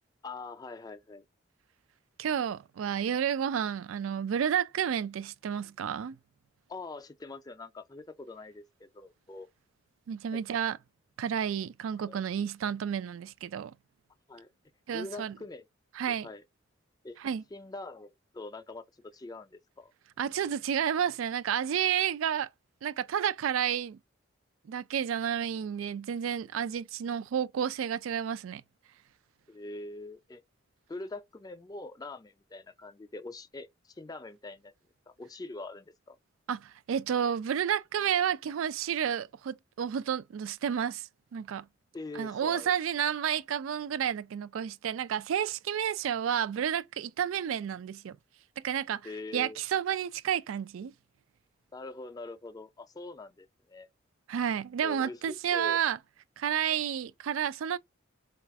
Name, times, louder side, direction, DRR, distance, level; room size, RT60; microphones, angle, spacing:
voice 1, 0.2-1.2 6.7-9.5 10.3-10.4 12.0-12.2 14.3-14.5 14.9-15.7 16.1-16.4 17.0-17.2 17.5-19.9 29.5-30.4 30.9-34.7 35.1-36.2 41.9-42.7 49.0-49.6 51.7-53.9 54.8-55.8, left 2 dB, 20° left, 0.4 m, -43 dB
voice 2, 2.2-6.2 10.1-10.8 11.2-13.7 14.9-15.4 16.0-16.3 17.2-17.4 20.2-22.5 22.8-24.0 24.7-28.6 36.5-41.7 42.1-48.2 48.6-49.0 49.3-50.9 54.3-56.0 56.4-57.8, right 8 dB, 80° right, 0.3 m, -31 dB
4.1 x 2.4 x 4.5 m
head